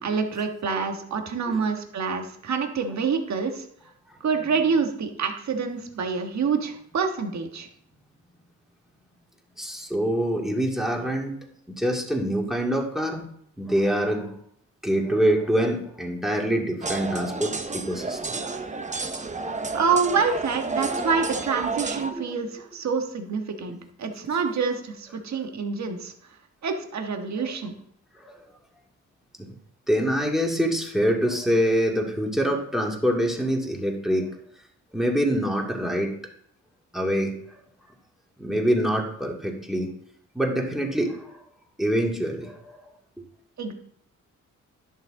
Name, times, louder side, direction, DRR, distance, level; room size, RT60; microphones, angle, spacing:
voice 1, 0.0-3.6 4.2-7.7 19.7-26.1 26.6-27.7 43.6-43.7, right 5 dB, 65° right, 4 dB, 1.5 m, -27 dB
voice 2, 9.6-11.3 11.7-13.3 13.6-14.3 14.8-18.3 20.9-21.0 22.1-22.3 23.7-23.8 27.4-27.5 28.2-28.4 29.4-29.5 29.9-34.3 34.9-36.1 36.9-37.4 38.4-39.9 40.3-41.3 41.8-42.8 43.2-43.3, equal, ahead, 0 dB, 2.3 m, -25 dB
sound 1, 16.8-22.1, right 3 dB, 25° right, 0.9 m, -31 dB
11.0 x 6.7 x 3.8 m, 0.66 s
cardioid pair, 75°, 31 cm